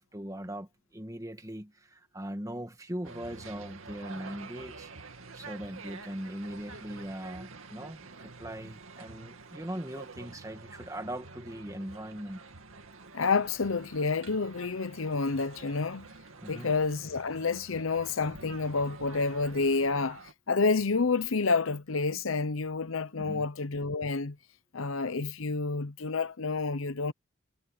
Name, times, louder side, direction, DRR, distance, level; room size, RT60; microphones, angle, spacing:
voice 1, 0.0-4.9 5.3-12.4 16.4-16.7 23.2-23.5, equal, 15° right, 1.9 m, -40 dB
sound 1, 3.0-20.3, right 4 dB, 90° right, 2.5 m, -48 dB
voice 2, 13.1-16.1 16.5-20.2 20.5-24.4 24.7-27.1, left 4 dB, 80° left, 0.8 m, -29 dB
head